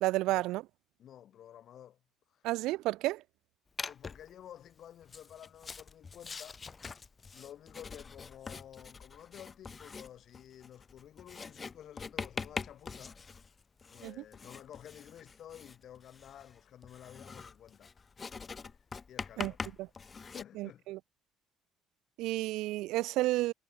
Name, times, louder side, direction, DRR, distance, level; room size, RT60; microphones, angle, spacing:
voice 1, 0.0-0.6 2.4-3.2 14.0-14.1 19.4-19.5 19.8-19.9 20.6-21.0 22.2-23.5, right 18 dB, 80° right, 0.5 m, -31 dB
voice 2, 1.0-2.0 2.3-2.5 3.8-6.6 7.3-13.2 13.9-17.9 18.4-19.6 20.1-20.9, left 10 dB, 60° left, 2.4 m, -52 dB
Writing, 3.8-4.3 5.0-20.4, left 5 dB, 35° left, 1.1 m, -44 dB
supercardioid pair, 80°, 0 cm